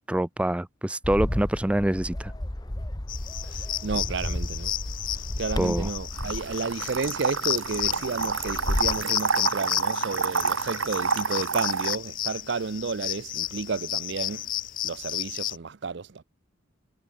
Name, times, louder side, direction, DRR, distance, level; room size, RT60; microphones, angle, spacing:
voice 1, 0.1-2.3 5.6-5.9, right 1 dB, 5° right, 0.3 m, -25 dB
Bird, 1.0-9.0, left 1 dB, 20° left, 0.9 m, -33 dB
sound 1, 3.1-15.6, left 13 dB, 40° left, 1.4 m, -33 dB
voice 2, 3.4-4.7 5.1-14.5 14.8-16.2, right 4 dB, 60° right, 0.5 m, -32 dB
sound 2, 6.2-12.0, right 5 dB, 85° right, 1.7 m, -29 dB
head